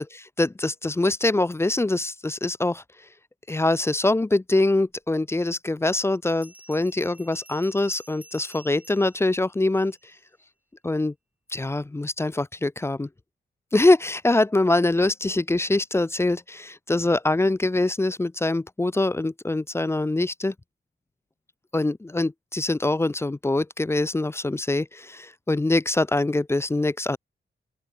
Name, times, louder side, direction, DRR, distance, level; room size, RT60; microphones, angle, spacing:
voice 1, 0.0-2.8 3.5-10.0 10.8-11.1 11.5-13.1 13.7-20.5 21.7-27.2, left 2 dB, 15° left, 0.6 m, -24 dB
Bell, 6.3-10.2, right 1 dB, 10° right, 7.3 m, -50 dB
open air
wide cardioid pair, 160°, 19 cm